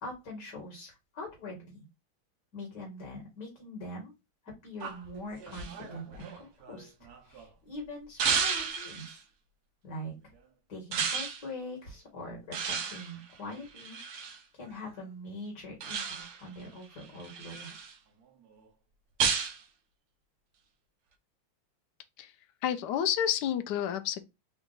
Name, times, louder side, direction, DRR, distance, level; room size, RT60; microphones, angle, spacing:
voice 1, 0.0-1.8 2.5-4.1 4.6-6.9 7.2-9.2 9.8-10.1 10.7-14.0 14.5-17.7, left 1 dB, 55° left, 1.9 m, -43 dB
sound 1, 4.8-7.4 8.2-9.2 10.9-11.4 12.5-14.4 15.8-16.5 17.0-17.9 19.2-19.6, right 6 dB, 65° right, 1.0 m, -33 dB
voice 2, 22.6-24.2, left 9 dB, 75° left, 0.9 m, -30 dB
3.9 x 2.4 x 3.7 m
omnidirectional pair, 2.3 m